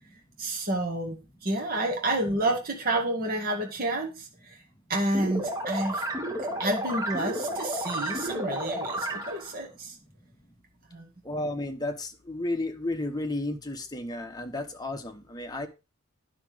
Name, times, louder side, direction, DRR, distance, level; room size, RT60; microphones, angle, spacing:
voice 1, 0.4-1.2 1.4-4.3 4.9-6.0 6.6-9.9 10.9-11.1, right 1 dB, 45° right, 1 dB, 2.1 m, -29 dB
sound 1, 5.1-9.5, right 1 dB, 15° right, 1.6 m, -32 dB
voice 2, 11.3-11.9 12.3-15.7, left 2 dB, 20° left, 5 dB, 1.1 m, -32 dB
10.0 x 6.2 x 5.0 m, 0.29 s
head